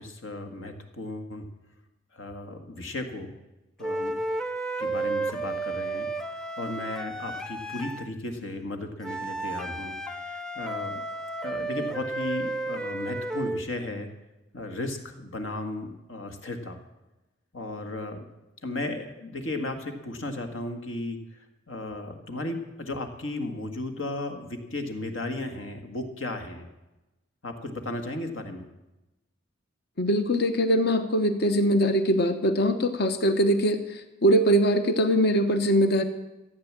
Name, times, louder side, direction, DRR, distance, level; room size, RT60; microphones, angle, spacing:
voice 1, 0.0-1.4 2.1-3.4 3.8-4.2 4.8-6.1 6.6-11.0 11.4-14.1 14.5-16.8 17.5-18.2 18.6-21.2 21.7-26.7 27.4-28.6, left 2 dB, 75° left, 6 dB, 1.8 m, -35 dB
sound 1, 3.8-8.1 9.0-13.7, right 2 dB, 5° left, 0.6 m, -32 dB
voice 2, 30.0-36.0, equal, 55° left, 8 dB, 1.0 m, -22 dB
14.5 x 9.0 x 7.5 m, 1.0 s
head